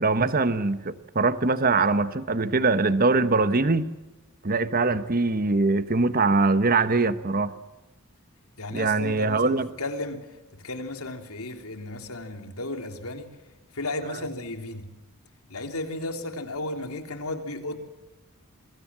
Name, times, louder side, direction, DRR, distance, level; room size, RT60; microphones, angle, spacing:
voice 1, 0.0-3.9 4.4-7.5 8.7-9.7, right 3 dB, 40° right, 13 dB, 1.1 m, -22 dB
voice 2, 8.6-10.2 10.5-13.3 13.7-14.8 15.5-17.8, left 2 dB, 85° left, 6 dB, 3.4 m, -34 dB
28.0 x 23.0 x 7.5 m, 1.1 s
head